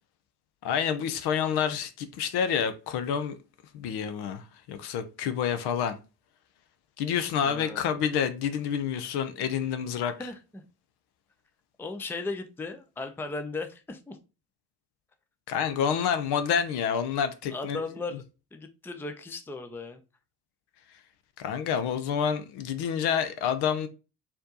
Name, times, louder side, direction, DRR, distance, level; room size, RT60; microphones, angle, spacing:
voice 1, 0.6-3.4 3.7-6.0 7.0-10.1 15.5-17.8 21.4-23.9, left 8 dB, 55° left, 0.7 m, -28 dB
voice 2, 7.4-7.8 10.2-10.7 11.8-14.2 17.5-18.2 18.5-20.0, left 3 dB, 5° left, 0.5 m, -36 dB
4.3 x 2.8 x 3.7 m
hypercardioid pair, 55°, 50 cm